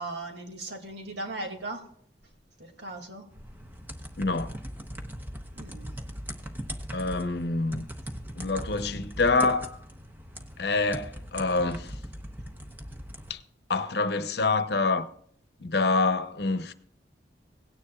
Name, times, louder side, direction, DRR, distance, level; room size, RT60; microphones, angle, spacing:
voice 1, 0.0-1.8 2.6-3.3 5.6-5.9, right 2 dB, 70° right, 2.3 m, -38 dB
sound 1, 3.3-13.3, equal, 10° right, 0.9 m, -40 dB
voice 2, 4.2-4.6 6.9-7.9 8.4-9.8 10.6-12.0 13.3-13.4 13.7-15.1 15.6-16.7, left 3 dB, 60° left, 0.8 m, -26 dB
17.5 x 9.8 x 2.4 m
head